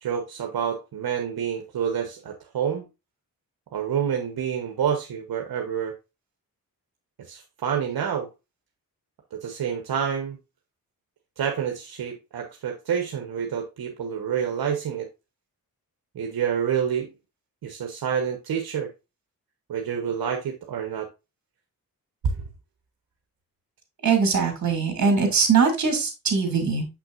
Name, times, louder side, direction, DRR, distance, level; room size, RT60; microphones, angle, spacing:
voice 1, 0.0-2.9 3.7-5.9 7.3-8.3 9.3-10.4 11.4-15.1 16.1-17.1 17.6-18.9 19.7-21.1 22.2-22.4, right 7 dB, 75° right, 3 dB, 1.1 m, -28 dB
voice 2, 24.0-26.9, right 5 dB, 50° right, 4 dB, 2.4 m, -21 dB
7.0 x 6.0 x 2.5 m, 0.25 s
wide cardioid pair, 145°, 36 cm